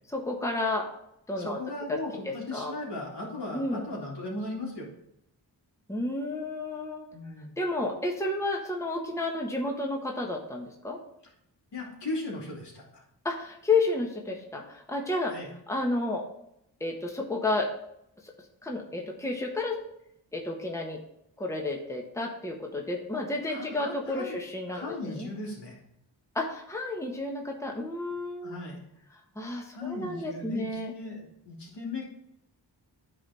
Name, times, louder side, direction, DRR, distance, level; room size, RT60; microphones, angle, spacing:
voice 1, 0.1-0.9 1.3-1.6 1.9-2.0 2.2-2.8 3.5-3.8 5.9-7.1 7.6-11.0 13.2-15.3 15.7-16.2 16.8-17.7 18.6-19.8 20.3-21.0 21.4-25.3 26.3-28.6 29.3-30.9, left 2 dB, 5° left, 0 dB, 1.3 m, -31 dB
voice 2, 1.4-4.9 7.1-7.5 11.7-13.0 15.3-15.5 23.5-24.4 24.7-25.8 28.4-28.8 29.7-32.0, left 2 dB, 65° left, -4 dB, 2.8 m, -37 dB
9.8 x 3.9 x 4.3 m, 0.78 s
cardioid pair, 55°, 44 cm